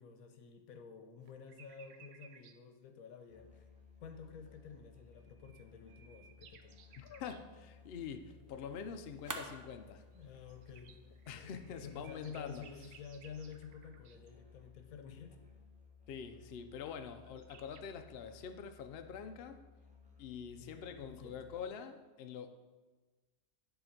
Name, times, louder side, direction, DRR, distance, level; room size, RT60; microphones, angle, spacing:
voice 1, 0.0-3.7 4.0-6.8 10.1-11.0 11.4-15.4 20.6-21.5, left 6 dB, 90° left, 6 dB, 1.2 m, -51 dB
sound 1, 1.2-2.6 5.2-7.5 10.1-14.3 17.0-17.1 17.2-17.8, right 7 dB, 65° right, 0.9 m, -61 dB
Musical instrument, 3.3-21.7, left 5 dB, 5° right, 0.9 m, -60 dB
sound 2, 6.9-12.8, right 2 dB, 25° right, 0.4 m, -53 dB
voice 2, 7.0-10.0 11.3-12.6 16.1-19.6 20.2-22.5, left 7 dB, 60° left, 7 dB, 0.7 m, -45 dB
10.5 x 3.8 x 5.8 m, 1.3 s
omnidirectional pair, 1.4 m